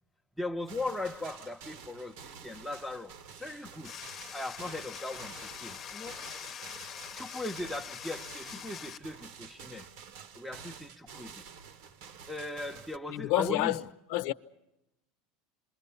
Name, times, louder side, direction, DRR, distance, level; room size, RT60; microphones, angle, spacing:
voice 1, 0.4-3.9 4.3-6.2 7.2-9.9 10.3-11.4 12.3-13.8, left 2 dB, ahead, 0.9 m, -39 dB
sound 1, 0.7-13.0, right 7 dB, 75° right, 1.3 m, -50 dB
sound 2, 3.8-9.0, left 8 dB, 40° left, 1.0 m, -44 dB
voice 2, 13.1-13.8 14.1-14.3, left 16 dB, 70° left, 0.8 m, -28 dB
27.5 x 22.0 x 7.0 m
supercardioid pair, 105°, 0 cm